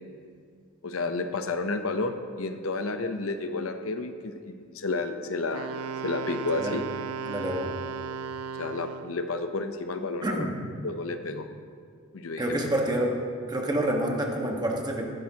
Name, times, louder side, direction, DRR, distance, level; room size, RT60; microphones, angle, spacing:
voice 1, 0.8-5.7 6.0-6.8 8.6-10.5 10.8-11.5 12.1-12.6, left 3 dB, 75° left, 7 dB, 0.7 m, -31 dB
Wind instrument woodwind instrument, 5.5-9.2, right 6 dB, 85° right, 0.4 m, -35 dB
voice 2, 7.3-7.7 10.2-10.5 12.4-13.1 13.5-15.1, right 1 dB, 20° right, 0 dB, 1.4 m, -28 dB
14.5 x 12.0 x 2.9 m, 2.1 s
head